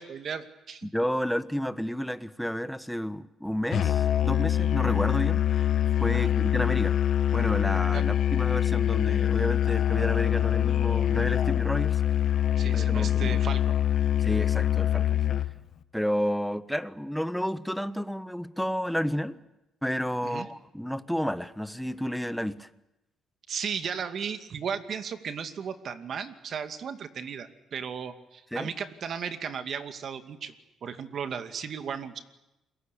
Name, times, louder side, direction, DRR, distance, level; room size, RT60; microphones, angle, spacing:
voice 1, 0.0-0.9 6.1-6.3 7.9-8.0 12.6-13.6 20.2-20.5 23.5-30.5 30.8-32.2, right 7 dB, 60° right, 2.3 m, -35 dB
voice 2, 0.8-5.7 6.0-7.0 7.3-12.4 12.7-13.4 14.2-15.2 15.9-19.4 19.8-22.7 28.5-28.7, equal, ahead, 1.3 m, -31 dB
Musical instrument, 3.7-15.6, left 10 dB, 65° left, 1.2 m, -24 dB
29.5 x 22.5 x 8.5 m
cardioid pair, 90°, 0 cm